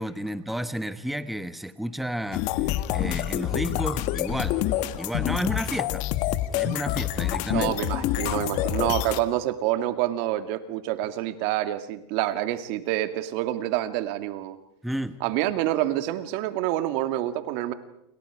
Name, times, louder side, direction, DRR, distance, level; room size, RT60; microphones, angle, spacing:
voice 1, 0.0-4.6 5.0-6.0 6.6-7.7 14.8-15.2, equal, ahead, 11 dB, 1.1 m, -31 dB
sound 1, 2.3-9.2, left 13 dB, 55° left, 1.7 m, -27 dB
voice 2, 7.5-14.6 15.2-17.7, right 14 dB, 65° right, 9 dB, 2.2 m, -27 dB
29.0 x 28.0 x 4.9 m, 0.82 s
supercardioid pair, 115°, 14 cm